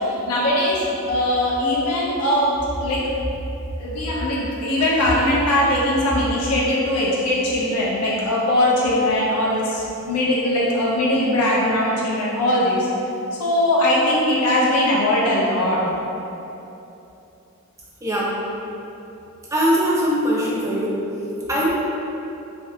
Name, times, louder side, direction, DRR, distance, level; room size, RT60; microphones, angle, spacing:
voice 1, 0.0-3.1 3.8-12.9 13.4-15.8, left 1 dB, 90° left, -5 dB, 0.5 m, -20 dB
voice 2, 18.0-18.3 19.5-21.0 21.5-21.7, equal, 15° right, -6 dB, 0.4 m, -21 dB
3.3 x 2.4 x 2.7 m, 2.9 s
head